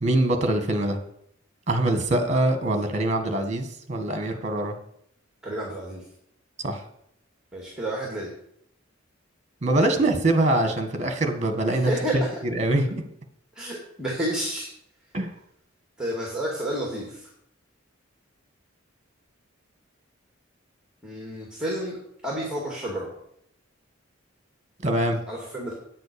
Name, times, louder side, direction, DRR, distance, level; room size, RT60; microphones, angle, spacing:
voice 1, 0.0-1.0 1.7-4.7 6.6-6.8 9.6-11.9 12.5-13.0 15.1-15.3 24.8-25.2, right 1 dB, 35° right, 7 dB, 1.6 m, -23 dB
voice 2, 5.4-6.0 7.5-8.3 11.7-12.4 13.5-14.7 16.0-17.3 21.0-22.0 22.2-23.1 25.3-25.7, right 1 dB, 5° right, -2 dB, 2.3 m, -30 dB
9.2 x 7.8 x 6.9 m, 0.72 s
head